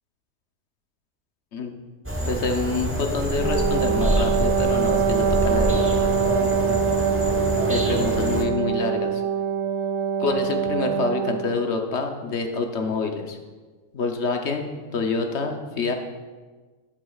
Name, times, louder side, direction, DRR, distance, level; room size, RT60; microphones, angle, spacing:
sound 1, 2.1-8.5, right 1 dB, 10° right, 0.6 m, -26 dB
voice 1, 2.2-6.9 7.7-9.2 10.2-13.4 13.9-15.9, left 4 dB, 50° left, 4 dB, 0.9 m, -27 dB
Wind instrument woodwind instrument, 3.4-11.5, right 7 dB, 70° right, 0.6 m, -24 dB
12.5 x 8.2 x 2.4 m, 1.4 s
omnidirectional pair, 1.8 m